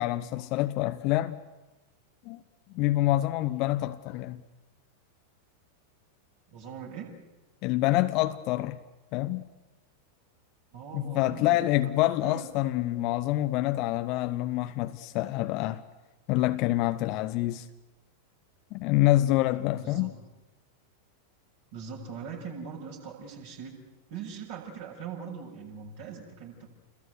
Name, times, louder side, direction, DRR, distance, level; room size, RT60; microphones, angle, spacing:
voice 1, 0.0-1.4 2.3-2.4 2.7-4.4 7.6-8.8 9.1-9.4 10.9-15.8 16.3-17.7 18.7-20.1, left 16 dB, 40° left, 0.9 m, -26 dB
voice 2, 6.5-7.1 10.7-11.8 12.2-12.5 19.8-20.1 21.7-23.7 24.1-26.7, right 6 dB, 50° right, 7.6 m, -41 dB
29.5 x 22.0 x 8.1 m
figure-of-eight pair, 90°, 0 cm